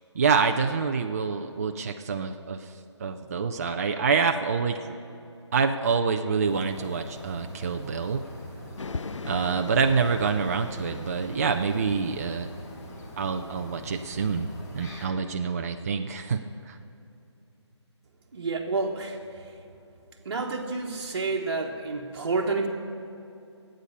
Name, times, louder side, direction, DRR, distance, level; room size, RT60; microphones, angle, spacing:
voice 1, 0.1-5.0 5.5-8.2 9.2-12.5 13.2-14.5 14.7-16.8, right 5 dB, 30° right, 5 dB, 0.5 m, -26 dB
sound 1, 6.4-15.1, equal, 35° left, 2.4 m, -43 dB
sound 2, 8.8-13.5, left 4 dB, 90° left, 0.5 m, -40 dB
voice 2, 18.3-19.6 20.2-22.7, right 3 dB, 50° right, -2 dB, 1.3 m, -29 dB
20.5 x 8.8 x 5.4 m, 2.8 s
figure-of-eight pair, 155°, 15 cm